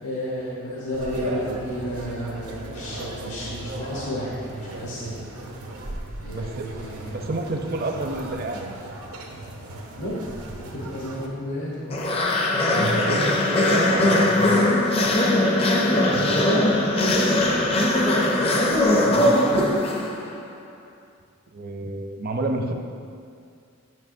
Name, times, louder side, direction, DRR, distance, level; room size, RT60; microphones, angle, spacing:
voice 1, 0.0-5.2 6.2-7.3 9.9-12.0 15.8-17.5, equal, 80° left, -7 dB, 1.2 m, -31 dB
sound 1, 0.9-11.3, right 1 dB, 90° right, 0.9 m, -37 dB
voice 2, 6.3-6.6 7.1-8.8 12.7-14.7 19.0-19.7 21.5-22.7, right 2 dB, 45° right, 4 dB, 0.5 m, -29 dB
sound 2, 11.9-20.4, left 1 dB, 25° left, 0.5 m, -20 dB
9.5 x 5.7 x 2.7 m, 2.3 s
head